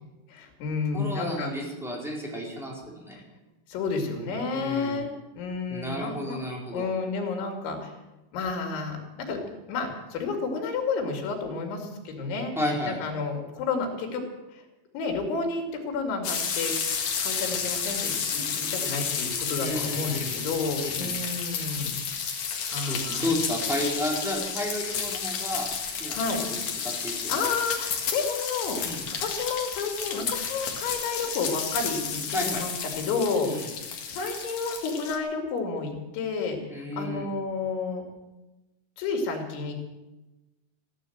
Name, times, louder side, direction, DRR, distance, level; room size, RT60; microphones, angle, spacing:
voice 1, 0.3-1.5 3.7-5.1 5.4-6.4 6.7-7.9 8.3-9.4 9.7-12.5 12.8-14.2 14.5-14.6 14.9-16.7 17.2-22.0 22.7-23.3 26.1-26.4 27.3-28.8 29.2-32.7 33.0-33.7 34.1-38.0 39.0-39.7, left 4 dB, 90° left, 3 dB, 4.8 m, -31 dB
voice 2, 0.9-3.2 4.5-5.1 5.7-6.9 12.6-13.0 19.5-20.4 20.8-21.1 22.8-26.2 26.5-26.6 26.8-27.3 28.8-29.1 32.3-32.6 33.4-33.7 36.7-37.3, left 1 dB, ahead, -3 dB, 3.5 m, -32 dB
sound 1, 16.2-35.2, left 6 dB, 50° left, 2.4 m, -31 dB
15.0 x 12.0 x 7.8 m, 1.1 s
omnidirectional pair, 5.2 m